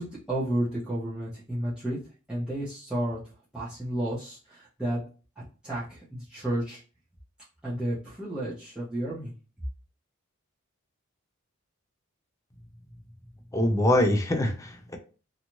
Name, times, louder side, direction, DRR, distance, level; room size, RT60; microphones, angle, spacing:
voice 1, 0.0-2.0 2.3-3.2 3.5-5.0 5.6-6.8 7.6-9.3, right 1 dB, 5° right, 0.8 m, -31 dB
voice 2, 13.5-15.0, left 1 dB, 15° left, 0.5 m, -24 dB
2.6 x 2.4 x 3.0 m
head